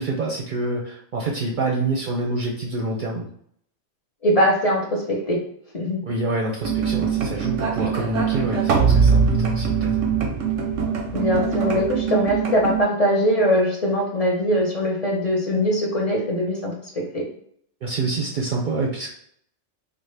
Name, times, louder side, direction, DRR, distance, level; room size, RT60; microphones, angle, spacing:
voice 1, 0.0-3.3 6.0-9.9 11.7-11.8 17.8-19.1, right 2 dB, 55° right, -1 dB, 0.6 m, -27 dB
voice 2, 4.2-5.4 5.7-6.0 11.1-17.2, equal, 40° left, -2 dB, 0.6 m, -21 dB
sound 1, 6.6-12.8, right 6 dB, 90° right, 0.9 m, -22 dB
3.6 x 2.1 x 3.2 m, 0.65 s
omnidirectional pair, 1.2 m